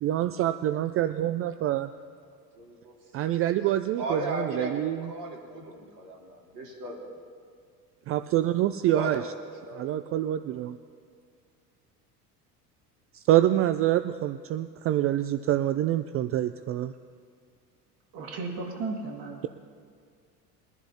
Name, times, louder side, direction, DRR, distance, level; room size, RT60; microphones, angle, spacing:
voice 1, 0.0-1.9 3.1-5.1 8.1-9.2 9.7-10.8 13.1-16.9, right 13 dB, 30° right, 11 dB, 0.4 m, -26 dB
voice 2, 2.5-2.9 4.0-7.1 8.9-10.6, right 1 dB, 70° right, -2 dB, 3.5 m, -37 dB
voice 3, 18.1-19.5, right 3 dB, 50° right, 1 dB, 2.3 m, -35 dB
23.0 x 10.5 x 2.9 m, 2.2 s
figure-of-eight pair, 70°, 48 cm